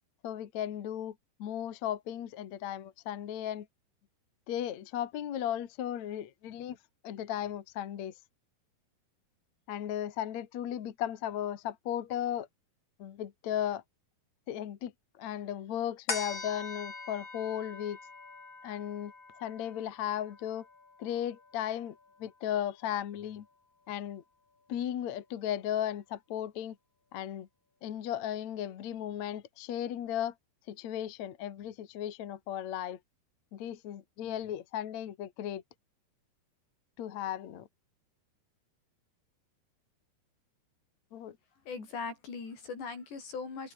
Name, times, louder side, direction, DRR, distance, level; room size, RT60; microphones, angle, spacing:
voice 1, 0.2-1.1 1.4-3.7 4.5-6.8 7.0-8.1 9.7-12.5 13.0-13.8 14.5-14.9 15.2-18.0 18.6-19.1 19.4-20.7 21.0-21.9 22.2-23.5 23.9-24.2 24.7-26.8 27.1-27.5 27.8-30.3 30.7-33.0 33.5-35.6 37.0-37.7 41.1-41.4, left 10 dB, 55° left, 2.4 m, -35 dB
sound 1, 16.1-22.8 23.3-23.4, left 3 dB, 30° left, 4.9 m, -43 dB
voice 2, 41.7-43.7, left 4 dB, 85° left, 9.5 m, -40 dB
omnidirectional pair, 4.8 m